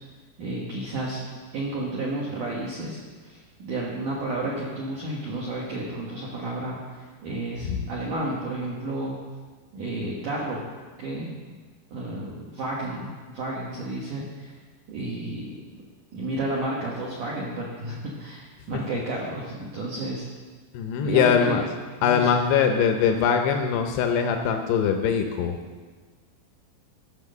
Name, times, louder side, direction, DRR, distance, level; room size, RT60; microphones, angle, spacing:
voice 1, 0.4-1.3 1.5-9.2 9.7-10.7 11.0-11.3 11.9-14.5 14.9-15.5 16.1-20.3 21.0-21.7 22.0-22.3, right 2 dB, 70° right, -4 dB, 2.0 m, -32 dB
voice 2, 20.7-21.6 22.0-25.6, left 7 dB, 90° left, 4 dB, 2.3 m, -22 dB
14.5 x 6.1 x 6.5 m, 1.4 s
omnidirectional pair, 5.7 m